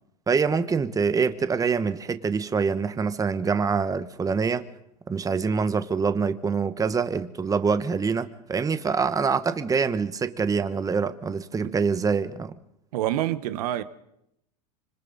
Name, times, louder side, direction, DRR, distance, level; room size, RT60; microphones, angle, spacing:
voice 1, 0.3-4.7 5.1-12.5, right 5 dB, 15° right, 1.1 m, -25 dB
voice 2, 12.9-13.8, right 13 dB, 70° right, 1.1 m, -27 dB
26.0 x 25.5 x 4.1 m
hypercardioid pair, 105°, 20 cm